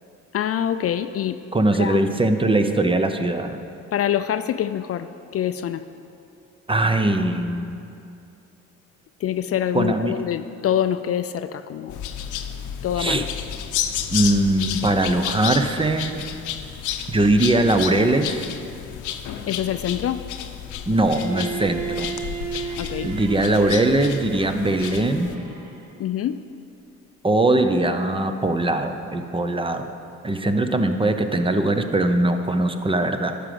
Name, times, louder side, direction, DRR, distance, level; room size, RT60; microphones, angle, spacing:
voice 1, 0.3-1.4 1.8-2.1 3.9-5.1 5.3-5.9 9.2-12.0 12.8-13.3 19.5-20.2 22.8-23.1 26.0-26.4, left 10 dB, 50° left, 11 dB, 0.4 m, -25 dB
voice 2, 1.5-3.6 6.7-7.8 9.7-10.1 13.0-13.2 14.1-16.3 17.1-18.5 20.9-22.1 22.6-22.8 23.0-25.3 27.2-29.9 30.2-33.4, right 2 dB, 15° right, 7 dB, 0.7 m, -21 dB
sound 1, 11.9-25.3, left 9 dB, 85° left, 0.7 m, -32 dB
Bowed string instrument, 21.1-26.0, right 6 dB, 85° right, 1.7 m, -35 dB
11.5 x 5.1 x 7.7 m, 2.6 s
cardioid pair, 90°, 30 cm